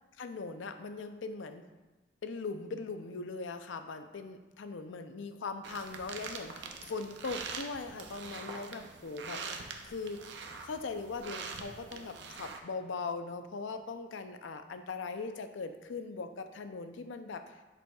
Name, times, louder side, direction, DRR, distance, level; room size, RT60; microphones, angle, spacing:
voice 1, 0.2-1.7 2.2-9.4 9.8-10.2 10.6-17.6, left 4 dB, 80° left, 8 dB, 0.5 m, -40 dB
sound 1, 5.6-12.6, right 4 dB, 65° right, 0.6 m, -44 dB
7.7 x 6.2 x 2.3 m, 1.2 s
head